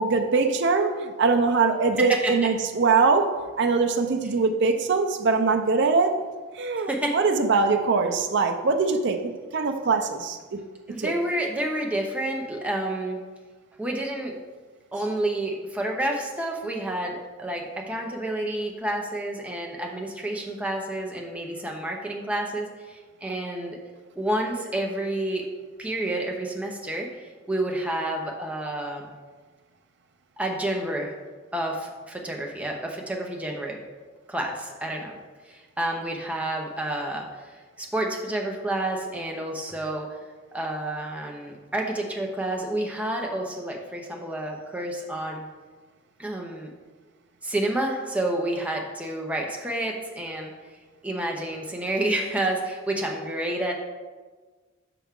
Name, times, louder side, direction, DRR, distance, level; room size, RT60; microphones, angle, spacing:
voice 1, 0.0-6.1 6.6-10.6 11.0-11.1, right 4 dB, 60° right, 5 dB, 0.6 m, -22 dB
voice 2, 2.0-2.5 6.9-7.2 10.9-13.2 13.8-14.3 14.9-23.8 24.2-25.4 25.8-27.1 27.5-29.0 30.4-31.1 31.5-33.8 34.3-35.1 35.5-37.3 37.8-40.1 40.5-45.5 46.2-46.7 47.4-50.5 51.0-53.7, right 1 dB, 5° right, 0 dB, 0.8 m, -29 dB
6.0 x 5.7 x 3.7 m, 1.4 s
head